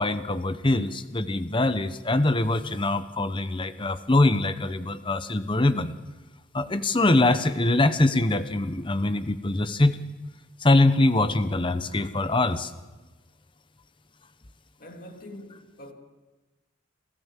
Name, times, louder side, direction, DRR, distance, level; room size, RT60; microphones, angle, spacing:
voice 1, 0.0-5.9 6.5-10.0 10.6-12.7, left 2 dB, 25° left, 0.9 m, -23 dB
voice 2, 14.8-15.9, left 1 dB, 45° left, 2.9 m, -44 dB
29.0 x 14.0 x 7.5 m
head